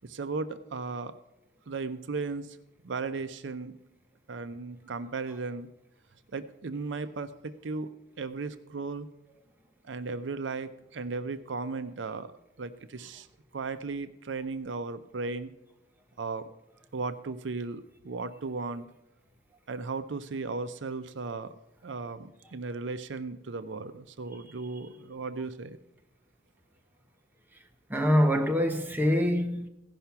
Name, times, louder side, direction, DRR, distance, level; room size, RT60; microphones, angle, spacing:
voice 1, 0.0-1.1 1.7-2.6 2.8-3.7 4.3-5.7 6.3-7.9 8.2-9.1 9.8-12.3 12.6-13.3 13.5-15.5 16.2-16.5 16.9-18.9 19.7-21.5 21.8-25.8, right 4 dB, 80° right, 0.6 m, -36 dB
voice 2, 27.9-29.7, equal, 10° right, 0.8 m, -24 dB
15.5 x 5.7 x 5.8 m
head